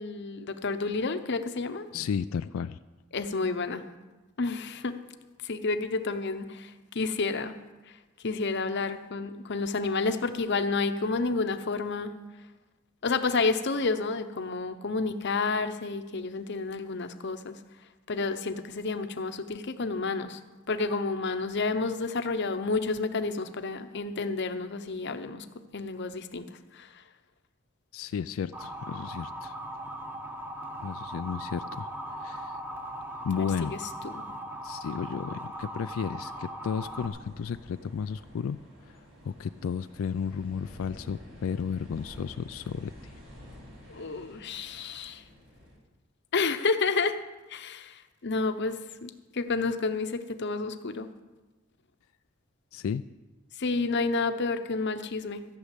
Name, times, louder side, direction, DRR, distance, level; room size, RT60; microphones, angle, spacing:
voice 1, 0.0-1.9 3.1-3.8 4.4-4.9 5.4-7.6 8.2-12.1 13.0-17.6 18.1-20.4 20.7-25.5 25.7-26.9 33.4-33.8 34.2-34.3 43.9-45.2 46.3-47.2 47.5-51.1 53.6-55.5, left 3 dB, 55° left, 9 dB, 0.8 m, -30 dB
voice 2, 1.9-2.8 27.9-29.5 30.8-32.6 33.2-33.8 34.6-38.9 39.3-43.1 52.7-53.0, left 7 dB, 75° left, 12 dB, 0.3 m, -33 dB
Motor vehicle (road) / Siren, 28.5-37.1, right 1 dB, 10° right, 1.0 m, -39 dB
sound 1, 36.8-45.8, left 1 dB, 65° right, 4.1 m, -49 dB
14.5 x 6.4 x 8.2 m, 1.2 s
head